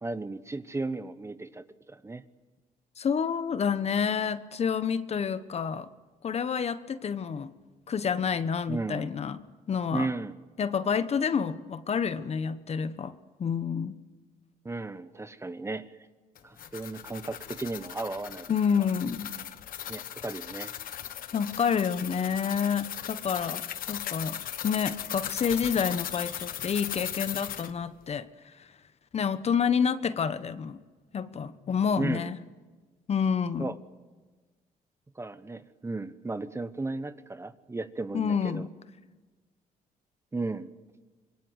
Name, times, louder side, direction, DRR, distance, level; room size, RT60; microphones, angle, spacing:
voice 1, 0.0-2.2 8.7-9.1 9.9-10.3 14.6-16.0 16.4-18.5 18.8-18.9 19.9-20.7 32.0-32.3 33.6-33.8 35.1-38.7 40.3-40.7, right 3 dB, 20° right, 13 dB, 1.1 m, -35 dB
voice 2, 3.0-5.9 6.2-7.5 7.9-9.4 9.7-10.1 10.6-14.0 18.5-19.3 21.3-24.4 24.6-28.3 28.6-28.7 29.1-30.8 31.1-32.4 33.1-33.7 38.1-38.7, left 6 dB, 45° left, 13 dB, 1.1 m, -28 dB
sound 1, 16.4-27.7, left 10 dB, 70° left, 1.3 m, -38 dB
25.5 x 23.0 x 8.1 m, 1.3 s
cardioid pair, 95°, 15 cm